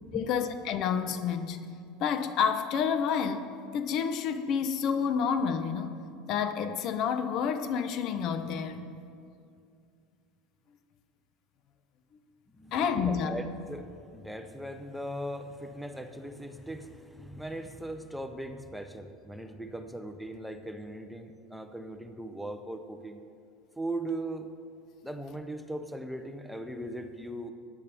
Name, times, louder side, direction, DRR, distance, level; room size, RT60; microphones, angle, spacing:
voice 1, 0.1-1.6 2.0-3.5 3.7-5.9 6.3-8.8 12.7-13.3, left 7 dB, 50° left, 10 dB, 0.7 m, -29 dB
voice 2, 12.5-23.2 23.8-24.5 25.0-27.5, right 1 dB, ahead, 7 dB, 0.6 m, -39 dB
15.0 x 10.0 x 3.5 m, 2.4 s
supercardioid pair, 115°, 0 cm